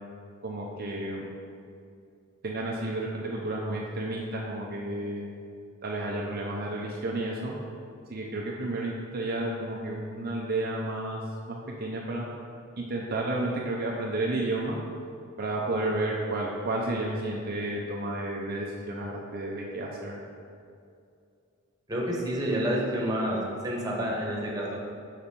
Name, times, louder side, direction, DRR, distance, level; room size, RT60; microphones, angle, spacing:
voice 1, 0.4-1.2 2.4-5.3 5.8-7.5 8.1-11.2 11.5-12.3 12.8-14.8 15.4-20.1, right 2 dB, 50° right, -3 dB, 0.6 m, -31 dB
voice 2, 21.9-23.4 23.6-24.8, equal, 20° right, -4 dB, 1.1 m, -29 dB
5.8 x 5.2 x 4.3 m, 2.5 s
head